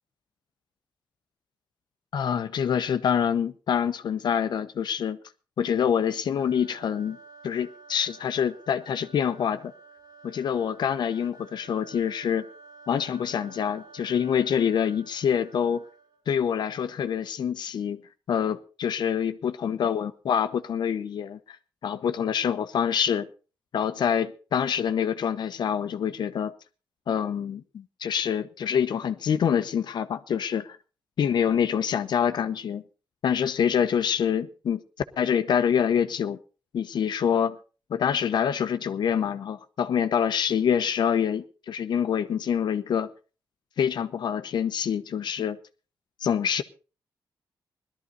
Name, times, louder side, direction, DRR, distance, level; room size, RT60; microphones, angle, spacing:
voice 1, 2.1-5.2 5.6-7.2 7.4-9.7 10.2-12.4 12.9-15.8 16.3-18.0 18.3-21.6 21.8-23.3 23.7-26.5 27.1-30.8 31.2-32.8 33.2-34.8 35.2-36.4 36.7-37.6 37.9-43.1 43.8-45.6 46.2-46.6, left 8 dB, 70° left, 1.0 m, -26 dB
sound 1, 6.4-16.3, right 3 dB, 60° right, 1.5 m, -51 dB
18.0 x 13.0 x 4.1 m
cardioid pair, 80°, 8 cm